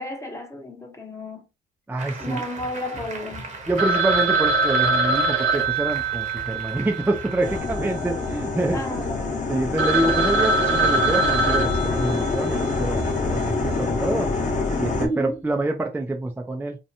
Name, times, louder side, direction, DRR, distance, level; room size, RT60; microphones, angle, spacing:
voice 1, 0.0-1.4 2.2-3.6 8.7-9.7 15.0-15.4, left 1 dB, 15° left, 0.7 m, -32 dB
voice 2, 1.9-2.4 3.7-8.8 9.5-13.0 13.3-14.3 14.8-16.8, right 2 dB, 10° right, 0.4 m, -26 dB
Applause, 2.0-7.6, right 3 dB, 40° right, 0.9 m, -38 dB
Telephone, 3.8-8.1 8.4-8.5 9.0-9.1 9.5-9.6 9.8-12.7, right 3 dB, 75° right, 0.8 m, -23 dB
sound 1, 7.4-15.1, left 3 dB, 40° left, 0.9 m, -26 dB
2.8 x 2.1 x 2.5 m
cardioid pair, 90°, 20 cm